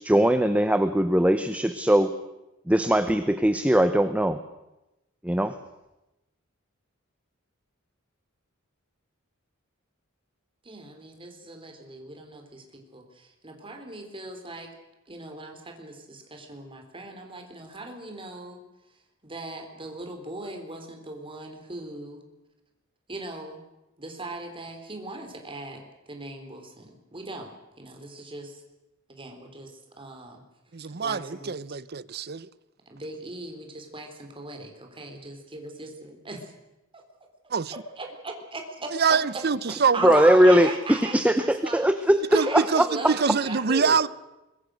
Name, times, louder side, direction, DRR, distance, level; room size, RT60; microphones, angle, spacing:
voice 1, 0.0-2.1 2.7-4.4 5.2-5.5 40.0-43.1, equal, 5° right, 0.8 m, -20 dB
voice 2, 10.6-14.7 15.1-18.6 19.2-22.2 23.1-23.6 24.0-27.5 27.8-28.6 29.1-30.4 31.0-31.8 32.9-36.5 36.9-37.0 38.0-39.4 39.7-41.9 42.3-44.0, right 2 dB, 25° right, 4.0 m, -38 dB
voice 3, 30.7-32.5 37.5-37.7 39.0-40.2 42.3-44.1, right 5 dB, 50° right, 0.7 m, -25 dB
25.0 x 22.5 x 6.4 m
head